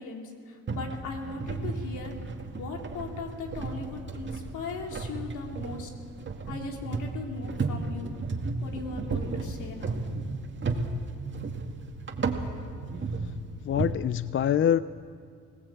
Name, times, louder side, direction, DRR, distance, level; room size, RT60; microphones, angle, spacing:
voice 1, 0.0-2.1 2.6-5.9 6.5-8.1 8.6-9.9, left 3 dB, 75° left, 2 dB, 3.2 m, -38 dB
sound 1, 0.7-13.9, right 3 dB, 40° right, 2.1 m, -34 dB
voice 2, 13.6-14.8, left 9 dB, 45° left, 16 dB, 0.5 m, -24 dB
21.0 x 18.0 x 8.3 m, 2.2 s
cardioid pair, 90°, 30 cm